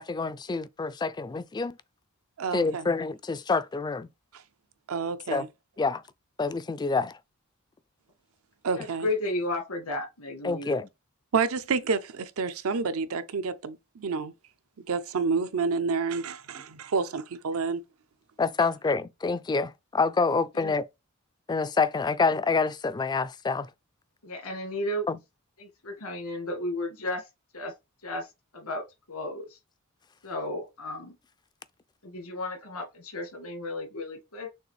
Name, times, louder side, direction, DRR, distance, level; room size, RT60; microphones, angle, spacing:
voice 1, 0.0-1.8 2.5-4.1 5.3-5.5 5.8-6.0 6.4-7.2 10.4-10.9 18.4-20.8 21.5-23.7 25.1-25.2, left 4 dB, 20° left, 0.3 m, -27 dB
voice 2, 2.4-2.9 4.9-5.5 8.6-9.1 11.3-14.3 14.8-17.8, right 5 dB, 70° right, 0.6 m, -29 dB
voice 3, 8.8-10.8 20.5-20.7 24.2-25.1 25.6-27.2 27.5-27.7 28.0-28.3 28.5-29.5 30.2-31.2 32.0-34.5, left 1 dB, 85° left, 1.7 m, -33 dB
6.5 x 2.5 x 3.2 m
head